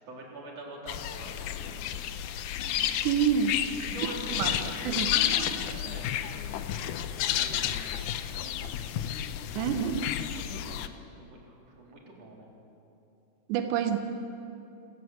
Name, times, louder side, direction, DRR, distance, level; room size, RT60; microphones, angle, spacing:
voice 1, 0.1-1.8 2.6-2.9 3.8-6.2 6.5-6.9 7.3-8.0 8.5-9.1 10.2-10.8 11.2-12.5, right 2 dB, 40° right, -1 dB, 4.6 m, -45 dB
sound 1, 0.9-10.9, left 11 dB, 80° left, 1.8 m, -31 dB
voice 2, 3.1-3.6 4.3-4.5 4.9-5.1 9.6-10.1 13.5-14.0, right 8 dB, 85° right, 6 dB, 3.4 m, -27 dB
27.5 x 17.0 x 8.1 m, 2.8 s
omnidirectional pair, 4.8 m